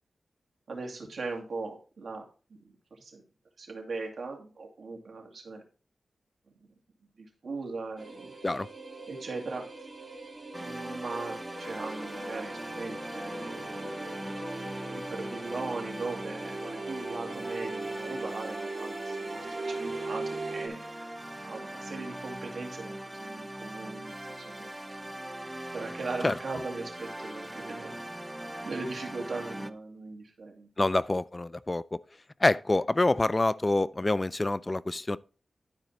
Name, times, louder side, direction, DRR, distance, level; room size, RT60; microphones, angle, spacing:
voice 1, 0.7-2.2 2.5-3.2 3.6-5.6 6.6-6.7 7.2-8.3 9.1-9.6 10.5-25.0 25.7-27.9 28.6-30.7, right 3 dB, 75° right, 2.4 m, -39 dB
sound 1, 8.0-20.7, right 2 dB, 55° right, 3.0 m, -40 dB
sound 2, 10.5-29.7, right 1 dB, 15° right, 0.6 m, -41 dB
voice 2, 30.8-32.0 32.4-35.2, left 2 dB, 30° left, 0.3 m, -26 dB
11.5 x 5.1 x 4.2 m
cardioid pair, 55°, 0 cm